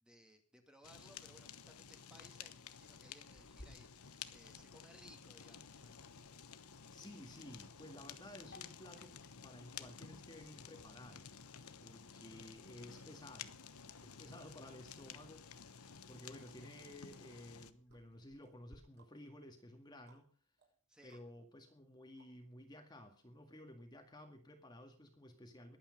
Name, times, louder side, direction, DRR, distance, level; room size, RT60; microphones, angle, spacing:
voice 1, 0.0-6.1 15.8-16.2 20.9-21.2, equal, 5° right, 4 dB, 2.2 m, -63 dB
Fire, 0.8-17.7, left 7 dB, 85° left, 1.1 m, -53 dB
Sink (filling or washing), 3.3-18.8, left 1 dB, 50° left, 3.0 m, -67 dB
voice 2, 6.9-9.2 9.4-11.3 11.8-13.6 14.0-20.3 21.0-25.8, left 1 dB, 20° left, 4 dB, 2.0 m, -55 dB
sound 1, 17.9-22.8 23.2-23.3, right 4 dB, 50° right, 6.9 m, -74 dB
22.0 x 9.0 x 5.3 m, 0.41 s
head